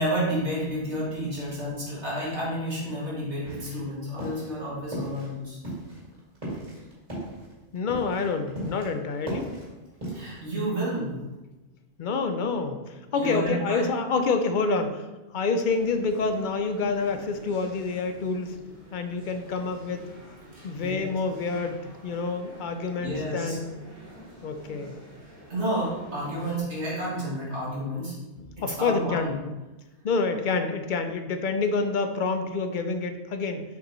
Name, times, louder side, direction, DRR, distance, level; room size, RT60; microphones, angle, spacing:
voice 1, 0.0-5.6 10.1-11.2 13.1-13.9 20.8-21.1 23.0-23.6 25.5-28.1 28.6-29.3, right 1 dB, 85° right, -8 dB, 2.6 m, -30 dB
sound 1, 3.4-3.9 4.2-4.5 4.9-5.3 5.6-8.9 9.1-10.4, right 1 dB, 30° right, 2.2 m, -36 dB
voice 2, 7.7-9.5 12.0-15.0 15.3-18.5 18.9-20.0 20.6-23.8 24.4-24.9 28.4-29.4 30.0-33.6, left 4 dB, 55° left, 7 dB, 0.7 m, -27 dB
sound 2, 15.7-26.6, right 1 dB, 55° right, 1.8 m, -47 dB
6.7 x 5.1 x 3.1 m, 1.1 s
omnidirectional pair, 1.1 m